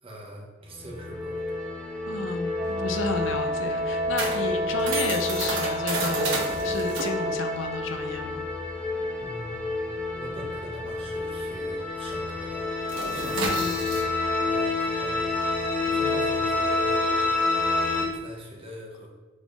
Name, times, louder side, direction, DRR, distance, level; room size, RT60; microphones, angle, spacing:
voice 1, 0.0-1.4 9.2-9.8 10.1-12.8 13.1-14.2 14.5-15.6 15.9-19.1, right 1 dB, 30° right, -3 dB, 0.9 m, -43 dB
sound 1, 0.7-18.0, left 3 dB, 5° left, 0.9 m, -29 dB
voice 2, 2.1-8.4 13.4-13.7, left 4 dB, 80° left, 6 dB, 0.5 m, -32 dB
Wind instrument woodwind instrument, 2.6-7.8, right 1 dB, 60° right, 0.4 m, -31 dB
sound 2, 2.6-11.6 11.9-12.1 12.4-18.2, right 2 dB, 85° right, 1.1 m, -33 dB
3.9 x 3.6 x 3.5 m, 1.3 s
head